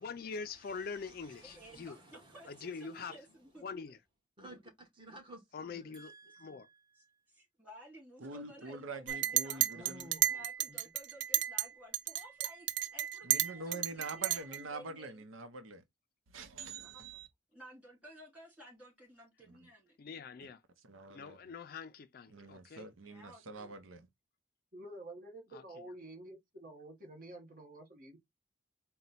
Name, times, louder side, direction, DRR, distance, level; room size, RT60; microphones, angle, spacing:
voice 1, 0.0-2.0 2.5-3.1 3.6-4.0 5.5-6.1 6.4-6.7 20.0-20.6 21.1-22.9 25.5-25.8, left 5 dB, 45° left, 0.3 m, -44 dB
voice 2, 0.6-3.0 4.4-7.2 9.7-10.8, right 1 dB, 25° right, 1.3 m, -55 dB
voice 3, 1.5-3.6 6.9-9.9 10.3-15.3 16.8-17.2 17.5-20.0 23.0-23.7, equal, 5° right, 2.5 m, -55 dB
voice 4, 8.2-10.1 13.2-15.8 16.3-17.3 19.5-19.6 20.9-21.4 22.3-24.1, right 3 dB, 90° right, 0.7 m, -45 dB
Chink clink, 9.1-11.7 11.9-14.6, right 12 dB, 65° right, 0.4 m, -32 dB
voice 5, 24.7-28.2, right 1 dB, 45° right, 1.2 m, -49 dB
4.2 x 2.2 x 3.9 m
head